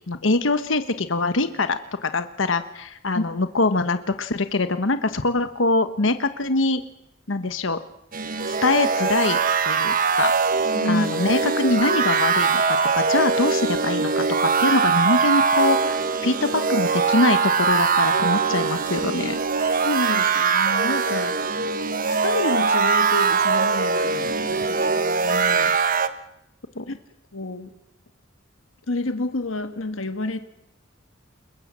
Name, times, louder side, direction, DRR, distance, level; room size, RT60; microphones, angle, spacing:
voice 1, 0.1-6.8 7.3-7.8 8.5-9.4 9.7-10.3 10.8-16.0 16.2-19.4 26.7-26.8, left 2 dB, 70° left, 10 dB, 1.3 m, -23 dB
sound 1, 8.1-26.1, right 5 dB, 45° right, 1.2 m, -22 dB
voice 2, 10.7-11.1 19.8-21.5 22.1-25.7 26.0-26.2 26.9-27.0 27.3-27.7 28.9-30.4, left 2 dB, 85° left, 9 dB, 1.5 m, -29 dB
29.5 x 22.0 x 7.5 m, 0.84 s
head